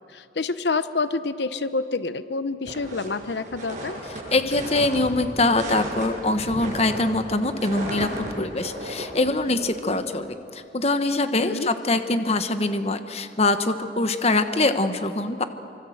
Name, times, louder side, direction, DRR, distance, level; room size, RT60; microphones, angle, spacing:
voice 1, 0.1-4.0 11.4-11.7, left 3 dB, 70° left, 13 dB, 0.8 m, -28 dB
sound 1, 2.7-10.2, right 1 dB, 45° right, 7.0 m, -35 dB
voice 2, 4.3-15.4, left 2 dB, 35° left, 9 dB, 1.1 m, -23 dB
26.0 x 25.0 x 7.9 m, 2.7 s
head